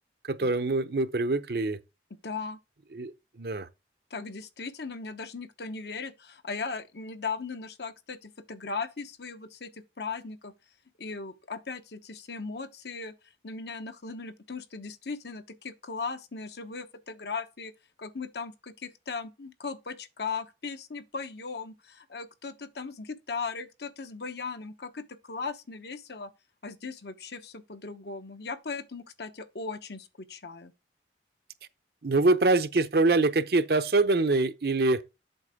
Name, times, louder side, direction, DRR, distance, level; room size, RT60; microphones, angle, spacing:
voice 1, 0.2-1.8 2.9-3.7 32.0-35.0, right 3 dB, 60° right, 0.7 m, -24 dB
voice 2, 2.2-2.6 4.1-10.5 11.0-13.1 13.4-17.7 18.0-26.3 26.6-30.7, left 4 dB, 70° left, 1.0 m, -38 dB
8.1 x 5.9 x 3.5 m
head